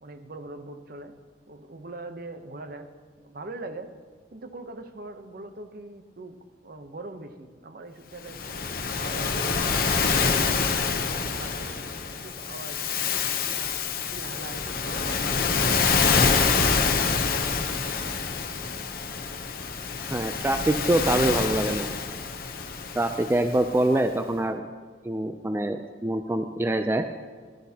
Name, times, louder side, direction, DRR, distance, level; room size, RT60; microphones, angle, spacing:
voice 1, 0.0-1.1 1.5-2.9 3.2-3.9 4.3-6.4 6.6-8.6 9.0-10.4 11.0-11.8 12.1-13.7 14.1-17.9, right 2 dB, 55° right, 8 dB, 0.8 m, -42 dB
Waves surf, 8.2-23.7, left 5 dB, 55° left, 0.8 m, -26 dB
voice 2, 20.1-21.9 23.0-24.7 25.0-27.1, right 1 dB, 15° right, 7 dB, 0.3 m, -25 dB
14.5 x 12.0 x 2.8 m, 1.5 s
head